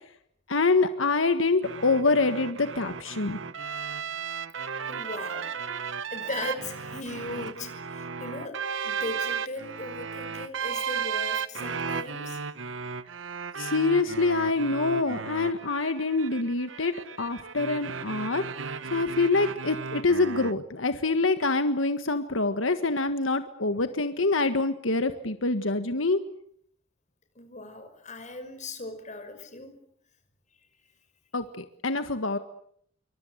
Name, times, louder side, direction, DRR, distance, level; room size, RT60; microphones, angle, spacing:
voice 1, 0.5-3.4 13.6-18.4 18.9-26.2 31.3-32.4, left 3 dB, 90° left, 9 dB, 1.6 m, -25 dB
sound 1, 1.6-20.5, right 6 dB, 75° right, 1.2 m, -35 dB
voice 2, 4.9-5.5 5.8-12.4 27.4-29.8, left 2 dB, 40° left, 8 dB, 5.8 m, -38 dB
27.5 x 24.5 x 8.1 m, 0.67 s
head